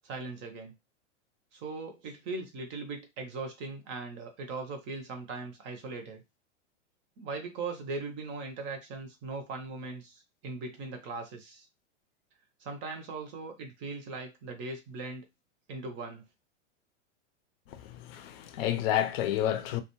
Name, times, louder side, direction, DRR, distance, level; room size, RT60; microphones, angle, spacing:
voice 1, 0.0-0.7 1.5-6.2 7.2-11.7 12.6-15.3 15.7-16.2, right 3 dB, 30° right, 0.6 m, -39 dB
voice 2, 17.7-19.8, left 11 dB, 55° left, 0.5 m, -30 dB
2.3 x 2.2 x 2.9 m
hypercardioid pair, 125°, 36 cm